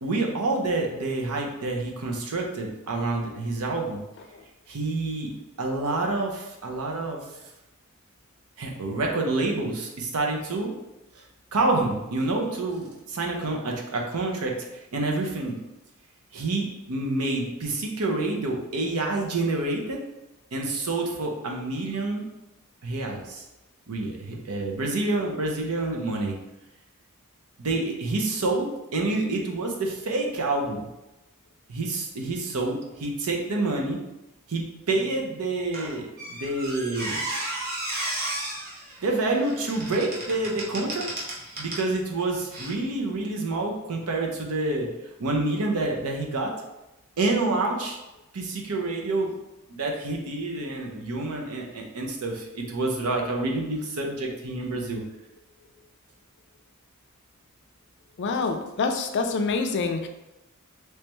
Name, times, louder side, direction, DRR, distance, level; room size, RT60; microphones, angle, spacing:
voice 1, 0.0-4.0 4.7-5.3 5.6-7.2 8.6-10.7 11.5-14.6 14.9-15.6 16.3-20.0 20.5-22.3 22.8-23.4 23.9-26.3 27.6-30.8 31.7-34.0 34.5-37.2 39.0-41.1 41.6-44.9 45.2-46.5 47.2-48.0 48.3-49.3 49.7-55.0, right 2 dB, 85° right, 0 dB, 0.7 m, -28 dB
Squeak, 35.7-41.9 42.5-42.7, right 1 dB, 40° right, 0.9 m, -34 dB
voice 2, 58.2-60.1, left 4 dB, 50° left, 5 dB, 0.4 m, -26 dB
3.3 x 3.1 x 3.0 m, 0.95 s
head